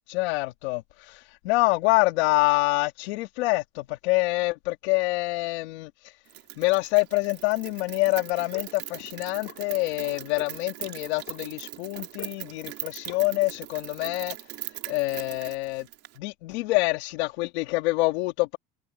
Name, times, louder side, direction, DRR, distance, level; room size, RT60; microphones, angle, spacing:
voice 1, 0.1-6.2 6.6-14.5 14.9-15.9 16.2-18.6, left 23 dB, 85° left, 1.6 m, -26 dB
Rain, 6.3-16.2, right 14 dB, 50° right, 2.2 m, -40 dB
sound 1, 8.3-8.7 9.0-9.6 9.9-10.6 10.8-11.4 11.7-12.4 12.6-12.8 13.1-13.2 13.5-13.6, left 14 dB, 50° left, 4.1 m, -44 dB
supercardioid pair, 135°, 32 cm